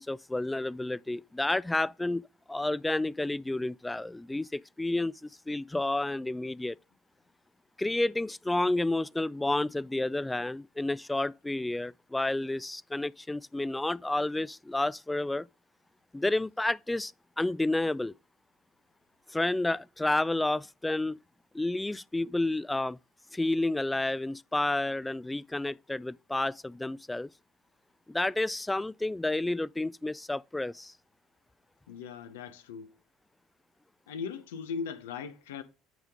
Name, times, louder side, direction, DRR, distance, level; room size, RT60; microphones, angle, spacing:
voice 1, 0.0-2.2 2.5-6.8 7.8-15.5 16.1-18.1 19.3-21.2 21.5-23.0 23.3-27.3 28.1-30.9, left 2 dB, 10° left, 0.3 m, -30 dB
voice 2, 31.9-32.9 34.1-35.6, left 6 dB, 90° left, 0.9 m, -38 dB
9.3 x 5.0 x 3.6 m
hypercardioid pair, 75°, 0 cm